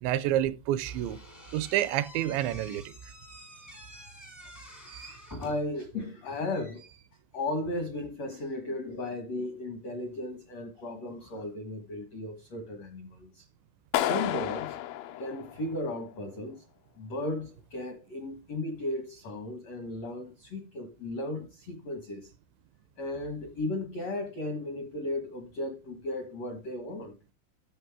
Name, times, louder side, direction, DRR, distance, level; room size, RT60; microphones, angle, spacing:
voice 1, 0.0-1.2 1.5-2.9, right 12 dB, 80° right, 2.8 m, -28 dB
Slam / Squeak, 0.8-5.8, left 1 dB, 30° left, 0.3 m, -48 dB
voice 2, 4.8-7.1 7.3-13.5 14.0-14.8 15.2-16.6 17.0-22.3 23.0-27.2, left 2 dB, 75° left, 1.5 m, -35 dB
Clapping, 13.9-16.0, left 13 dB, 90° left, 3.2 m, -31 dB
12.5 x 5.3 x 4.7 m
omnidirectional pair, 5.3 m